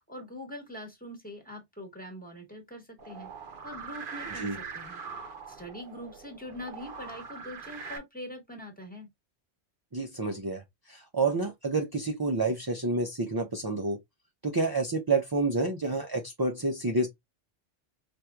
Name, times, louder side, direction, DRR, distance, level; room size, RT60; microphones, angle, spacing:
voice 1, 0.1-3.3 3.6-5.0 5.5-9.1, equal, 10° left, 1.1 m, -43 dB
sound 1, 3.0-8.0, right 5 dB, 55° right, 0.8 m, -42 dB
voice 2, 9.9-10.6 10.9-14.0 14.4-17.1, right 3 dB, 40° right, 0.3 m, -29 dB
4.3 x 2.6 x 2.3 m
omnidirectional pair, 1.2 m